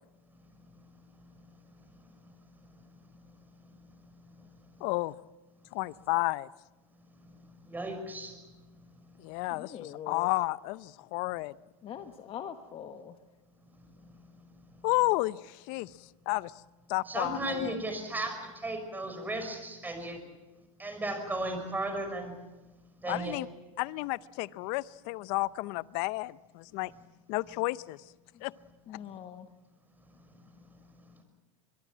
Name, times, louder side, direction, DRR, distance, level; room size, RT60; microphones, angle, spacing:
voice 1, 4.8-5.1 5.7-6.5 9.2-11.5 14.8-15.9 16.3-16.5 16.9-17.8 23.1-23.5 23.8-26.9 27.3-28.0 28.4-28.5, left 22 dB, 55° left, 19 dB, 0.7 m, -31 dB
voice 2, 7.6-8.4 17.1-20.2 20.8-22.3 23.0-23.4, right 2 dB, 10° right, 6 dB, 5.9 m, -35 dB
voice 3, 9.5-10.3 11.8-13.2 28.3-28.4 28.9-29.5, left 9 dB, 35° left, 7 dB, 1.3 m, -43 dB
23.0 x 22.0 x 7.5 m, 1.2 s
supercardioid pair, 120°, 17 cm